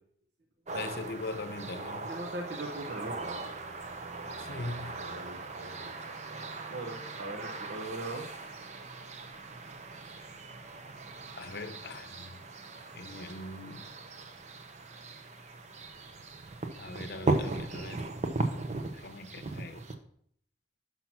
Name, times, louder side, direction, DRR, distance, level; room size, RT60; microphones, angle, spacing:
voice 1, 0.7-2.1 4.4-5.0 11.4-12.3 12.9-13.9 16.8-18.0 19.0-19.8, left 2 dB, 55° left, 0.7 m, -40 dB
sound 1, 0.7-19.9, right 2 dB, 40° right, 0.7 m, -38 dB
voice 2, 2.1-3.5 5.0-6.0 6.7-8.3, right 2 dB, 65° right, 1.0 m, -40 dB
6.0 x 5.8 x 5.9 m
head